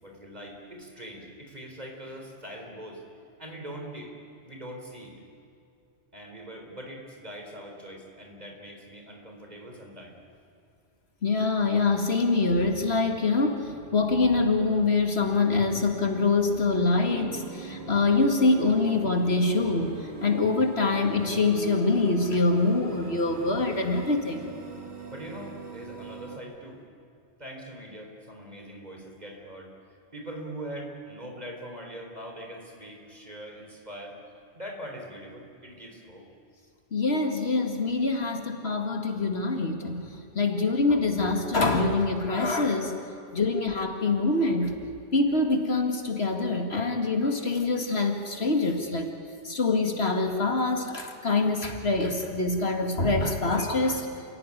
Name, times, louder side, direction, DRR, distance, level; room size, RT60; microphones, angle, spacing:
voice 1, 0.0-3.0 3.4-4.1 4.4-5.2 6.1-10.2 25.1-26.8 27.4-29.7 30.1-34.2 34.5-36.3, right 1 dB, 35° right, 2 dB, 4.2 m, -42 dB
voice 2, 11.2-19.9 20.2-24.4 36.9-43.0 43.3-44.7 45.1-49.1 49.4-54.1, left 3 dB, 65° left, 4 dB, 2.3 m, -25 dB
sound 1, 12.5-26.4, right 3 dB, 65° right, 2.5 m, -43 dB
29.0 x 16.5 x 9.9 m, 2.6 s
omnidirectional pair, 1.2 m